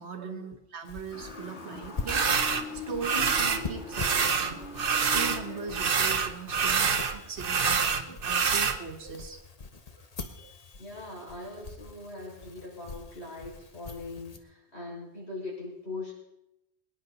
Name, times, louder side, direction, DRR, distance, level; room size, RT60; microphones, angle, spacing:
voice 1, 0.0-2.2 2.7-4.6 4.9-9.4 10.4-10.5, right 5 dB, 75° right, 6 dB, 1.7 m, -39 dB
sound 1, 0.8-14.4, left 4 dB, 35° left, 1.1 m, -44 dB
Motor vehicle (road) / Siren, 1.1-7.9, left 4 dB, 90° left, 2.2 m, -43 dB
Dragging wood across carpet, 2.1-2.6 3.0-3.6 3.9-5.4 5.7-8.8, right 6 dB, 55° right, 1.0 m, -26 dB
voice 2, 10.8-16.1, left 2 dB, 70° left, -4 dB, 6.2 m, -41 dB
23.0 x 10.0 x 4.1 m, 0.86 s
omnidirectional pair, 1.1 m